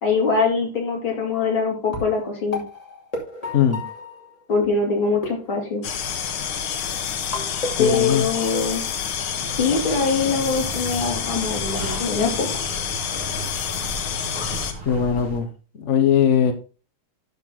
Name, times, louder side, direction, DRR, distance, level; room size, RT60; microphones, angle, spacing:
voice 1, 0.0-2.6 4.5-5.8 7.8-8.8 9.6-12.6, left 4 dB, 75° left, 3.5 m, -23 dB
sound 1, 1.2-1.5 1.9-4.7 5.2-6.3 7.3-8.7, left 3 dB, 15° left, 2.5 m, -34 dB
sound 2, 5.8-14.7, left 8 dB, 90° left, 1.9 m, -28 dB
voice 2, 7.8-8.2 14.9-15.5 15.8-16.5, left 8 dB, 45° left, 1.1 m, -19 dB
sound 3, 9.4-15.4, right 1 dB, 30° right, 2.0 m, -35 dB
12.0 x 4.6 x 3.8 m
omnidirectional pair, 2.2 m